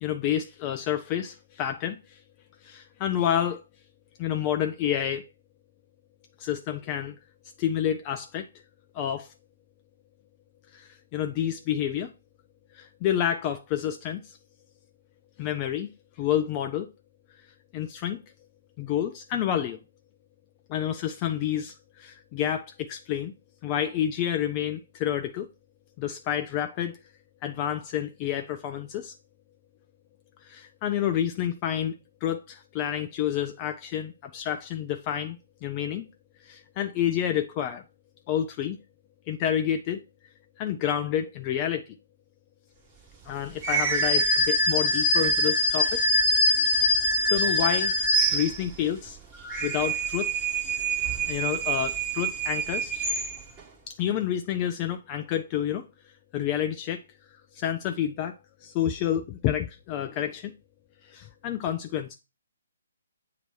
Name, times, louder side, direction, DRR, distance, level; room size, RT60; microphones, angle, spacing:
voice 1, 0.0-2.2 2.6-3.6 4.2-5.2 6.4-7.1 7.6-8.5 8.9-9.3 10.7-12.1 12.7-14.4 15.4-15.9 16.2-16.9 17.7-18.2 18.8-19.8 20.7-23.3 23.6-25.5 26.0-27.0 27.4-29.1 30.4-31.9 32.2-35.4 35.6-36.0 36.4-37.8 38.3-38.8 39.3-40.0 40.6-41.8 43.2-46.0 47.2-47.9 48.3-49.2 49.6-50.3 51.3-52.9 53.9-55.8 56.3-57.0 57.5-58.3 58.6-60.5 61.1-62.2, left 10 dB, 25° left, 0.4 m, -29 dB
sound 1, 43.6-48.9 49.4-53.6, equal, 15° right, 1.0 m, -25 dB
7.8 x 2.9 x 4.5 m
figure-of-eight pair, 135°, 0 cm